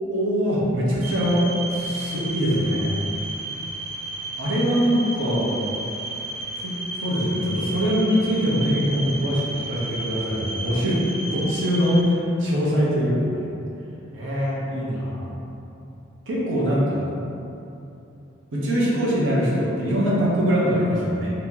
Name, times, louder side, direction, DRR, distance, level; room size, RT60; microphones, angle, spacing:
voice 1, 0.1-2.9 4.4-5.5 6.6-11.0 11.3-13.5 14.1-15.3 16.3-17.1 18.5-21.3, equal, 70° right, -6 dB, 0.7 m, -23 dB
sound 1, 1.0-12.0, right 2 dB, 35° right, 0.3 m, -33 dB
2.9 x 2.7 x 3.7 m, 2.8 s
head